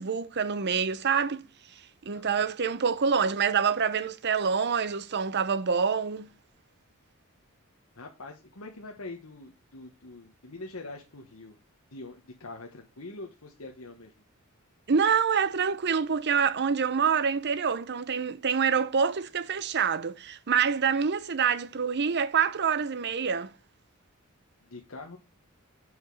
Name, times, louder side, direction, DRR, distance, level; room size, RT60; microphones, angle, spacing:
voice 1, 0.0-1.5 2.1-6.3 14.9-23.5, right 6 dB, 50° right, 0.7 m, -26 dB
voice 2, 2.1-2.4 7.9-11.6 11.9-14.1 24.6-25.2, left 2 dB, 70° left, 1.3 m, -44 dB
7.9 x 5.9 x 4.8 m
head